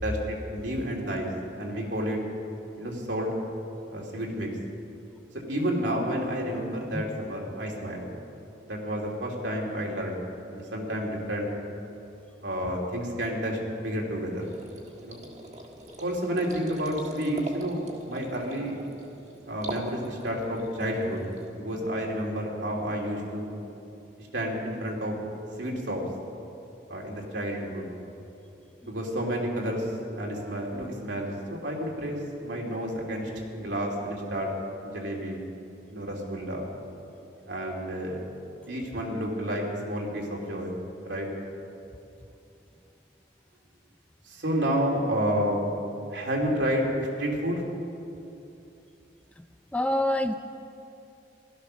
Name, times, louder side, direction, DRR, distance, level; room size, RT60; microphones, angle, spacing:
voice 1, 0.0-1.3 1.6-2.2 2.8-3.3 3.9-4.5 5.5-8.1 8.6-10.2 10.5-11.5 12.4-14.5 15.0-15.2 16.0-18.8 19.4-21.2 21.5-23.5 24.2-25.1 25.6-26.0 26.9-27.9 28.8-34.5 34.8-35.4 35.9-36.7 37.5-38.2 38.7-40.7 41.0-41.3 44.2-45.7 46.1-47.6, equal, 80° right, -1 dB, 2.9 m, -30 dB
sound 1, 14.4-21.5, right 1 dB, 40° right, 1.7 m, -43 dB
voice 2, 49.7-50.3, left 1 dB, 5° left, 8 dB, 0.4 m, -26 dB
16.5 x 12.5 x 6.4 m, 2.8 s
head